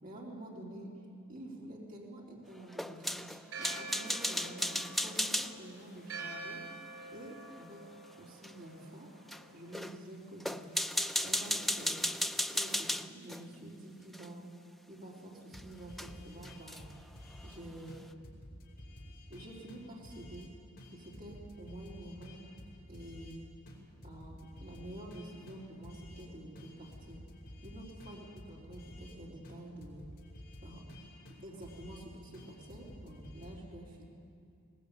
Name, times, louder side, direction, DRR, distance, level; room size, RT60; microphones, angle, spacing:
voice 1, 0.0-0.9 1.3-3.3 3.6-6.6 7.1-7.8 8.2-9.1 9.5-10.7 11.2-12.1 12.5-14.5 14.9-16.9 17.4-18.1 19.3-20.5 20.9-22.4 22.9-23.5 24.0-27.2 27.6-30.1 30.6-30.8 31.4-34.1, right 1 dB, 45° right, -4 dB, 3.8 m, -48 dB
sound 1, 2.7-5.5 8.4-8.5 9.3-9.4 9.7-10.0 10.4-13.4 14.1-14.3 15.5-15.6 16.0-16.1 16.4-16.9, left 1 dB, ahead, 0.6 m, -34 dB
Church bell, 3.5-9.8, right 3 dB, 75° right, 6.5 m, -47 dB
sound 2, 15.5-17.6 17.9-18.0 18.2-20.5 20.8-23.4 23.7-26.3 26.6-29.2 29.4-29.6 29.8-32.1 32.3-33.5, left 1 dB, 50° left, 5.3 m, -51 dB
22.0 x 19.5 x 8.7 m, 2.4 s
head